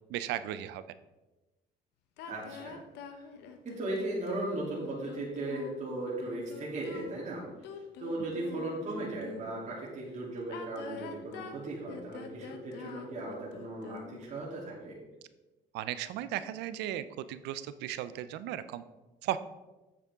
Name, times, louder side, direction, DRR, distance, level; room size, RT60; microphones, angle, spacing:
voice 1, 0.1-0.8 15.7-18.8 19.2-19.4, right 12 dB, 90° right, 13 dB, 0.6 m, -36 dB
sound 1, 2.2-9.7 10.4-14.4, left 6 dB, 85° left, 1.0 m, -45 dB
voice 2, 2.2-2.8 3.1-3.3 3.6-7.5 8.0-15.0, right 2 dB, 45° right, -5 dB, 2.9 m, -37 dB
8.5 x 8.3 x 3.6 m, 1.1 s
cardioid pair, 110°, 17 cm